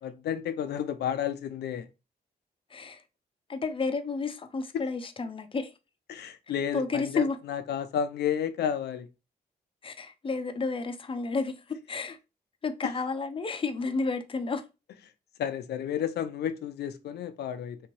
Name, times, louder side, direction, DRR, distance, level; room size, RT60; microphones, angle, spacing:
voice 1, 0.0-1.9 6.1-9.1 15.4-17.8, left 8 dB, 85° left, 0.4 m, -31 dB
voice 2, 2.7-3.0 3.5-5.7 6.7-7.4 9.8-12.2 12.6-14.6, left 4 dB, 35° left, 0.5 m, -31 dB
3.5 x 2.9 x 2.9 m
cardioid pair, 95°, 17 cm